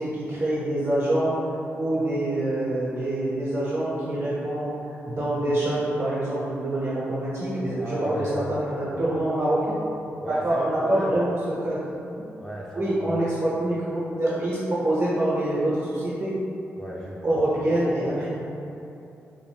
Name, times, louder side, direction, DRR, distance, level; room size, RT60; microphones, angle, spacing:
voice 1, 0.0-1.3 1.7-9.8 10.3-11.9 12.2-12.3 12.7-16.3 17.2-18.3, right 1 dB, 60° right, -9 dB, 1.1 m, -25 dB
voice 2, 7.8-9.1 10.2-11.2 12.4-13.4 16.8-18.3, equal, ahead, -5 dB, 0.4 m, -36 dB
3.6 x 2.5 x 3.4 m, 2.8 s
cardioid pair, 75°, 5 cm